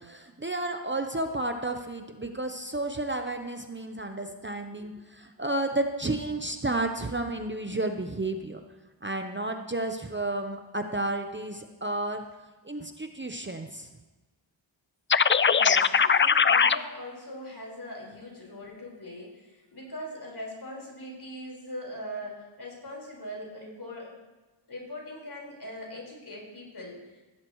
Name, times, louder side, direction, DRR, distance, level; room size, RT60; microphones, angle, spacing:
voice 1, 0.0-8.6 9.0-12.2 12.6-13.9, right 2 dB, 25° right, 5 dB, 0.9 m, -32 dB
sound 1, 15.1-16.8, left 6 dB, 30° left, 0.4 m, -20 dB
voice 2, 15.5-24.1 24.7-27.2, left 1 dB, 55° left, -3 dB, 4.9 m, -41 dB
16.0 x 12.0 x 3.2 m, 1.2 s
cardioid pair, 50°, 47 cm